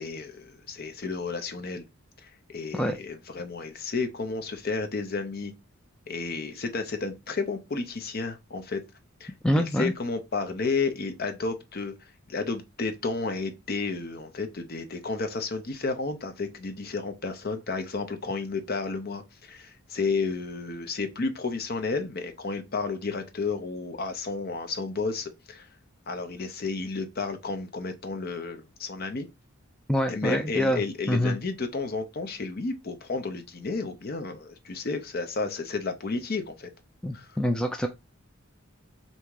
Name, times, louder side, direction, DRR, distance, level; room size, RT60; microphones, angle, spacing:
voice 1, 0.0-1.8 2.2-5.5 6.1-8.8 9.2-25.7 26.1-29.3 30.1-36.7 37.1-37.3, left 4 dB, 45° left, 0.6 m, -32 dB
voice 2, 9.4-9.9 29.9-31.4 37.0-37.9, equal, 5° left, 0.3 m, -26 dB
3.5 x 2.7 x 4.6 m
head